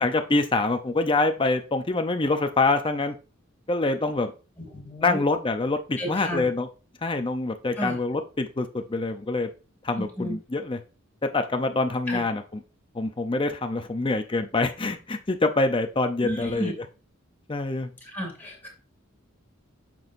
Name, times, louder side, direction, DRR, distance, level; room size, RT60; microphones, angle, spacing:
voice 1, 0.0-3.1 3.7-4.3 5.0-6.7 7.0-9.5 9.8-10.8 11.2-12.4 12.9-16.7 17.5-17.9, left 3 dB, 25° left, 6 dB, 0.6 m, -25 dB
voice 2, 4.6-5.2 6.0-6.5 7.8-8.0 10.0-10.4 12.1-12.2 16.2-16.7 18.1-18.7, equal, 10° left, -2 dB, 2.7 m, -32 dB
9.0 x 6.2 x 2.6 m, 0.33 s
head